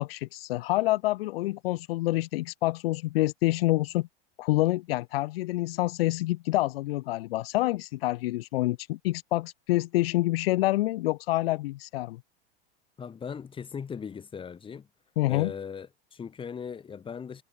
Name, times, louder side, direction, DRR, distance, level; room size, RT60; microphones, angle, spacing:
voice 1, 0.0-4.1 4.4-12.2 15.2-15.5, left 18 dB, 80° left, 0.5 m, -27 dB
voice 2, 13.0-14.9 15.3-17.4, left 6 dB, 15° left, 7.1 m, -38 dB
supercardioid pair, 145°, 29 cm